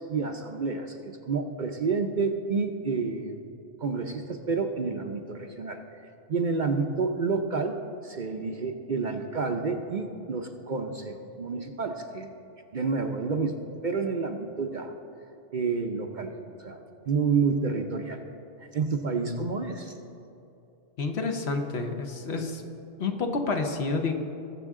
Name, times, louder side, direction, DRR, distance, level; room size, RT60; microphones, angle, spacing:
voice 1, 0.0-3.4 3.8-5.8 6.3-7.8 8.0-12.3 12.7-13.6 13.8-14.9 15.5-16.3 16.6-16.8 17.0-18.2 18.6-19.9, right 4 dB, 50° right, 5 dB, 0.7 m, -29 dB
voice 2, 21.0-22.6 23.0-24.1, left 3 dB, 65° left, 4 dB, 1.2 m, -29 dB
20.5 x 7.1 x 3.7 m, 2.7 s
omnidirectional pair, 1.2 m